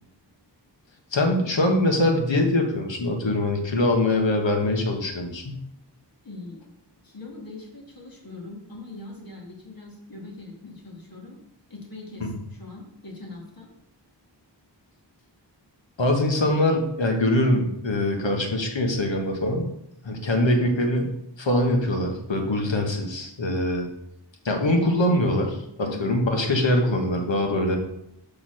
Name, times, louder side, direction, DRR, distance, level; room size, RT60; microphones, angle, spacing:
voice 1, 1.1-5.6 12.2-12.3 16.0-19.7 20.0-21.1 21.4-23.9 24.4-27.8, left 1 dB, 85° left, 3 dB, 1.4 m, -23 dB
voice 2, 6.2-6.6 7.0-11.4 11.7-12.3 12.6-13.7 25.8-26.2, left 3 dB, 50° left, -2 dB, 2.4 m, -41 dB
5.6 x 4.3 x 6.2 m, 0.78 s
wide cardioid pair, 70°, 44 cm